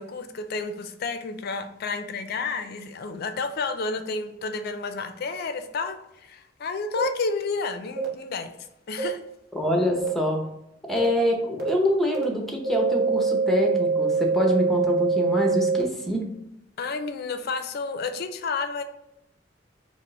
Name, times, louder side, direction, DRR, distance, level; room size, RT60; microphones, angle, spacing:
voice 1, 0.0-8.5 8.9-9.2 16.8-18.8, left 4 dB, 55° left, 9 dB, 0.4 m, -31 dB
sound 1, 7.0-7.1 8.0-8.1 9.0-9.1 10.0-10.1 11.0-11.1 11.6-11.7 12.1-12.2 12.6-15.8, right 5 dB, 55° right, 0.8 m, -24 dB
voice 2, 9.5-10.4 10.8-16.3, left 1 dB, ahead, 1 dB, 0.6 m, -25 dB
4.9 x 2.0 x 3.0 m, 0.83 s
head